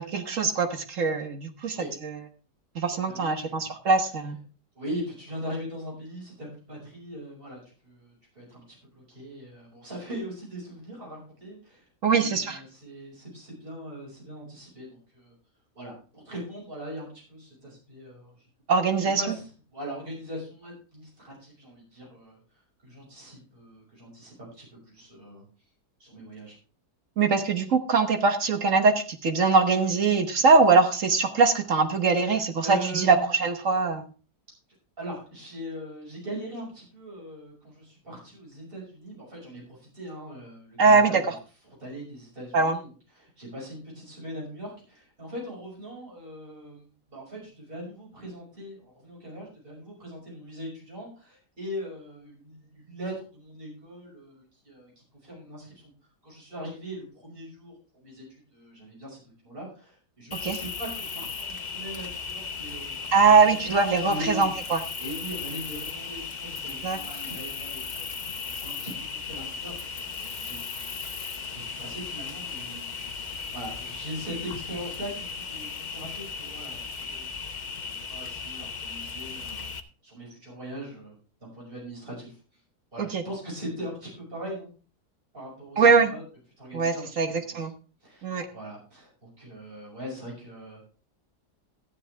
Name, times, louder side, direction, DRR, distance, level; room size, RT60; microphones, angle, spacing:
voice 1, 0.0-1.8 2.0-2.1 2.7-4.4 12.0-12.6 18.7-19.2 27.2-33.2 33.4-34.0 40.8-41.2 42.5-42.8 60.3-60.6 63.1-64.8 66.8-67.0 83.0-83.2 85.8-86.1 86.7-87.7 88.2-88.5, right 4 dB, 55° right, 7 dB, 1.4 m, -22 dB
voice 2, 3.1-3.7 4.7-15.3 15.7-18.5 19.0-22.4 22.8-25.4 26.0-26.5 32.2-33.3 35.0-41.2 41.7-54.9 55.2-55.9 56.2-64.5 65.0-77.4 77.8-79.7 80.0-81.2 81.4-82.4 82.9-84.7 85.3-86.2 86.6-87.7 88.0-90.8, equal, 35° right, -3 dB, 6.0 m, -40 dB
Cricket, 60.3-79.8, left 5 dB, 40° left, 0.6 m, -36 dB
13.0 x 10.0 x 3.4 m, 0.36 s
omnidirectional pair, 1.7 m